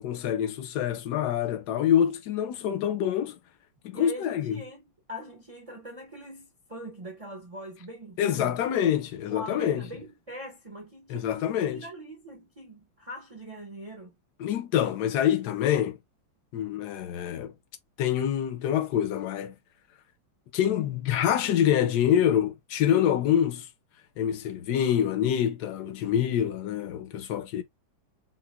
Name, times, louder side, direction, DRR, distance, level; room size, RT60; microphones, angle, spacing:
voice 1, 0.0-3.4 3.8-4.6 8.2-9.8 11.1-11.9 14.4-16.0 16.5-17.5 18.0-19.5 20.5-23.7 24.2-27.6, left 10 dB, 70° left, 1.0 m, -26 dB
voice 2, 3.9-8.6 9.3-14.1 26.9-27.1, right 1 dB, 55° right, 0.4 m, -42 dB
5.8 x 2.1 x 2.2 m
omnidirectional pair, 2.2 m